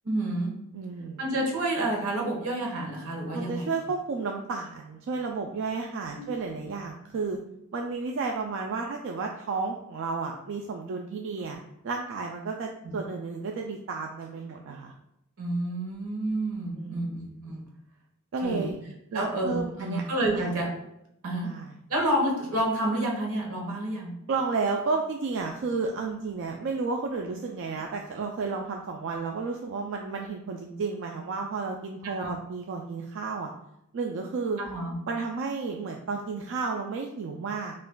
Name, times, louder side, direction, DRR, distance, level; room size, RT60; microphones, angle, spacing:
voice 1, 0.0-0.5 1.2-3.7 6.2-6.3 12.8-12.9 15.4-17.5 18.4-18.7 19.1-20.7 21.2-21.5 21.9-24.1 32.0-32.3 34.6-34.9, right 1 dB, 85° right, -1 dB, 1.1 m, -29 dB
voice 2, 0.7-1.2 3.3-7.4 7.7-14.9 16.8-17.1 18.3-18.8 19.1-20.6 21.4-21.8 24.3-33.5 33.9-34.6 35.1-37.7, right 4 dB, 60° right, 2 dB, 0.3 m, -32 dB
5.6 x 2.5 x 2.2 m, 0.80 s
head